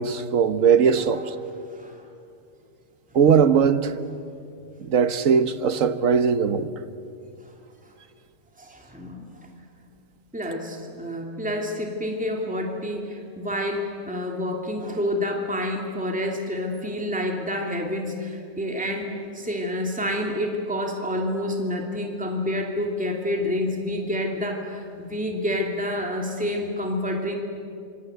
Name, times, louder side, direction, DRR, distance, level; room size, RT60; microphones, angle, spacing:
voice 1, 0.0-1.3 3.1-3.9 4.8-6.7, right 6 dB, 60° right, 1.4 m, -19 dB
voice 2, 8.6-9.4 10.3-27.4, left 1 dB, 5° right, 2.8 m, -28 dB
26.5 x 26.0 x 8.1 m
omnidirectional pair, 1.6 m